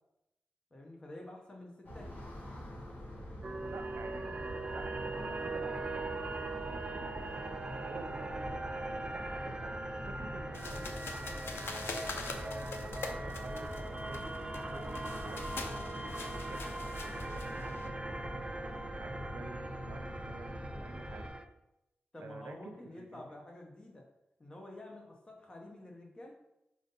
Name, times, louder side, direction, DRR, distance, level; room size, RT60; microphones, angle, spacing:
voice 1, 0.7-2.1 22.1-24.0 24.4-26.3, left 1 dB, 20° left, 0 dB, 1.0 m, -49 dB
sound 1, 1.8-21.3, equal, 50° left, 1.6 m, -44 dB
sound 2, 3.4-21.4, right 2 dB, 25° right, 0.4 m, -41 dB
voice 2, 3.7-4.3 4.7-7.2 7.8-8.5 9.0-11.5 12.2-14.3 14.7-18.4 18.7-21.3 22.2-23.3, right 3 dB, 85° right, 6 dB, 0.8 m, -50 dB
sound 3, 10.5-17.9, left 4 dB, 80° left, 0.7 m, -44 dB
5.0 x 4.0 x 5.4 m, 0.87 s
wide cardioid pair, 175°, 4 cm